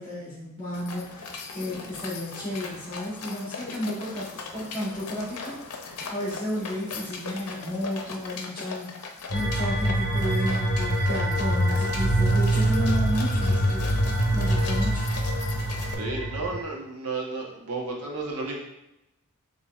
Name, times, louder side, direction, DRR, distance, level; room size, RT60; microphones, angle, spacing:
voice 1, 0.0-15.1, left 1 dB, 20° left, -9 dB, 1.2 m, -33 dB
sound 1, 0.7-15.9, left 4 dB, 85° left, 0.6 m, -39 dB
sound 2, 9.3-16.6, right 1 dB, 45° left, 0.9 m, -24 dB
voice 2, 15.6-18.6, right 3 dB, 85° right, -1 dB, 1.0 m, -33 dB
6.8 x 3.0 x 2.4 m, 0.88 s
head